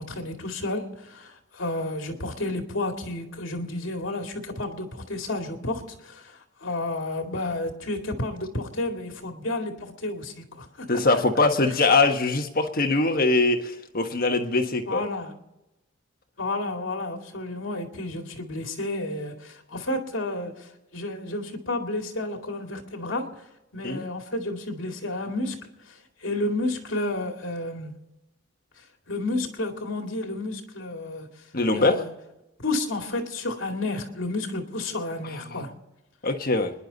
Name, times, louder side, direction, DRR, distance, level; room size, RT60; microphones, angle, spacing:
voice 1, 0.0-10.9 14.9-15.3 16.4-23.3 23.7-25.6 25.9-27.9 29.1-31.3 31.8-32.1 32.6-35.7, left 2 dB, 70° left, 3 dB, 2.3 m, -31 dB
voice 2, 10.9-15.0 23.8-24.0 31.5-32.0 35.5-35.6 36.2-36.7, left 3 dB, 45° left, 5 dB, 1.4 m, -22 dB
25.5 x 11.0 x 4.1 m, 0.95 s
head